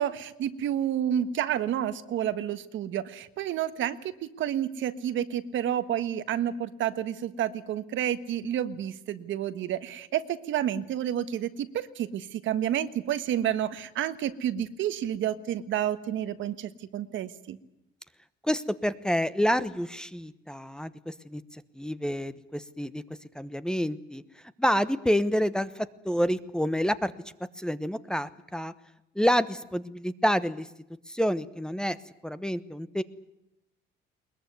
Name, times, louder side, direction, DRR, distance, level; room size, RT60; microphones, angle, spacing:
voice 1, 0.0-17.6, right 10 dB, 70° right, 12 dB, 1.6 m, -30 dB
voice 2, 18.4-21.4 21.8-23.0 23.3-24.2 24.6-27.1 27.6-28.7 29.1-30.7 31.1-32.0 32.2-33.0, equal, 5° left, 13 dB, 1.1 m, -28 dB
21.5 x 21.5 x 9.5 m, 0.85 s
cardioid pair, 120°, 21 cm